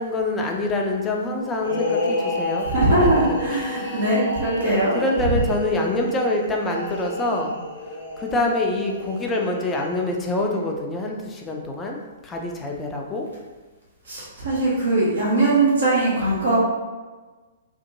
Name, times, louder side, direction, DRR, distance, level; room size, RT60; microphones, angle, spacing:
voice 1, 0.0-2.7 3.0-4.1 4.6-7.6 8.2-12.0 12.2-13.3, left 2 dB, 15° left, 0 dB, 0.4 m, -26 dB
sound 1, 1.6-10.2, left 2 dB, 60° left, 0.6 m, -30 dB
voice 2, 2.6-5.0 14.0-16.6, right 2 dB, 65° right, -6 dB, 0.8 m, -21 dB
2.7 x 2.5 x 2.6 m, 1.3 s
figure-of-eight pair, 115°, 0 cm